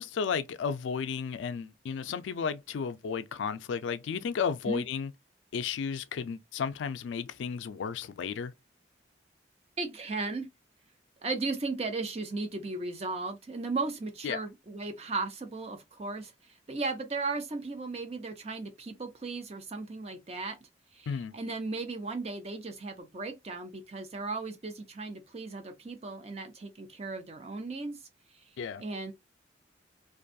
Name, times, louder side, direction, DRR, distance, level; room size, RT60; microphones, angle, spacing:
voice 1, 0.0-5.1 5.5-8.5 14.2-14.4 21.1-21.3 28.6-28.8, left 6 dB, 80° left, 0.3 m, -33 dB
voice 2, 9.8-10.5 11.2-20.6 20.9-21.1 21.3-28.0 28.3-28.4 28.8-29.1, right 3 dB, 35° right, 0.5 m, -36 dB
2.5 x 2.2 x 2.5 m
head